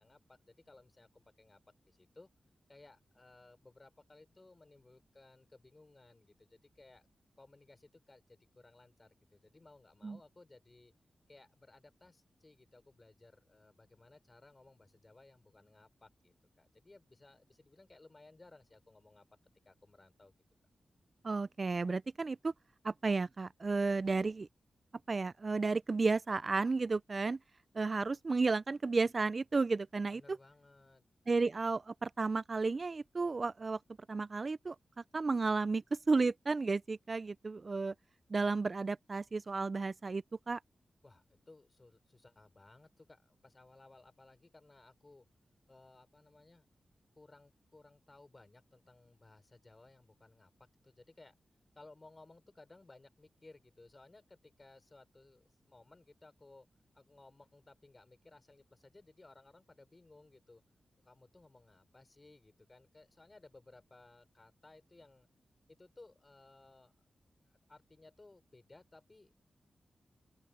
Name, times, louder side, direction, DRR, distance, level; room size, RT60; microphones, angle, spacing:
voice 1, 0.0-2.3 2.7-7.1 7.4-10.9 11.3-19.3 19.7-20.3 30.1-31.1 41.0-45.3 45.7-46.7 47.2-51.4 51.8-56.7 56.9-60.6 61.1-65.3 65.7-66.9 67.4-69.3, left 2 dB, 30° left, 5.3 m, -60 dB
voice 2, 21.2-22.5 22.8-24.5 25.1-27.4 27.7-30.4 31.3-33.8 34.1-34.8 35.1-37.9 38.3-40.6, right 3 dB, 40° right, 0.3 m, -33 dB
open air
wide cardioid pair, 90°, 0 cm